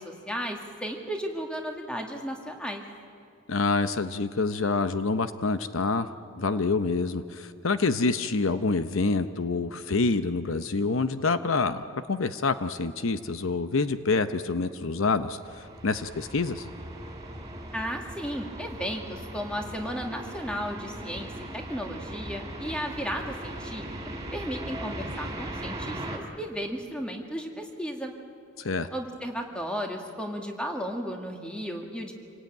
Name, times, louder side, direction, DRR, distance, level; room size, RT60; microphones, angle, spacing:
voice 1, 0.0-2.8 17.7-23.9 24.3-28.1 28.9-32.1, equal, 5° left, 2 dB, 2.0 m, -34 dB
voice 2, 3.5-6.1 6.4-11.8 12.1-16.7 28.6-28.9, left 3 dB, 65° left, 10 dB, 0.7 m, -27 dB
sound 1, 15.4-26.2, right 1 dB, 15° right, 3.3 m, -39 dB
27.0 x 18.5 x 9.2 m, 2.4 s
head